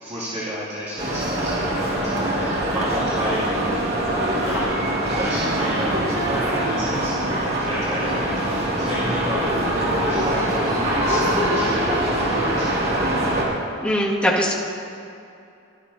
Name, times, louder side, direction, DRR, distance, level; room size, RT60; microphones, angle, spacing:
voice 1, 0.0-3.8 4.1-4.7 5.1-6.0 6.3-9.7 9.9-12.8, equal, 30° right, -12 dB, 2.5 m, -32 dB
sound 1, 1.0-13.4, right 1 dB, 55° right, 2.4 m, -23 dB
voice 2, 13.8-14.5, equal, 5° left, -7 dB, 2.0 m, -20 dB
17.5 x 12.5 x 2.8 m, 2.6 s
head